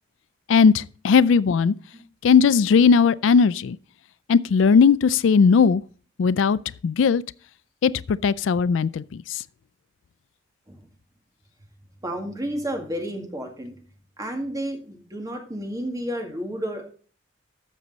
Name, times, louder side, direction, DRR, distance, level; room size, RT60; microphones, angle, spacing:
voice 1, 0.5-1.7 2.2-3.8 4.3-5.8 6.2-6.6 6.8-7.2 7.8-9.4, left 5 dB, 80° left, 0.4 m, -18 dB
voice 2, 12.0-13.8 14.2-16.9, equal, 20° right, 2.0 m, -31 dB
13.5 x 6.3 x 4.0 m
head